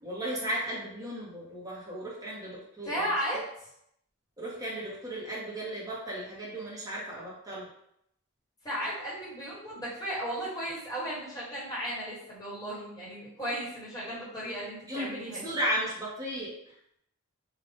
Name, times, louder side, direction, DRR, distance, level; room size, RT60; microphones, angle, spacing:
voice 1, 0.0-3.0 4.4-7.7 14.9-16.7, right 1 dB, 15° right, -7 dB, 1.0 m, -35 dB
voice 2, 2.8-3.4 8.6-15.5, equal, 15° left, -8 dB, 1.3 m, -35 dB
3.7 x 2.4 x 3.4 m, 0.75 s
head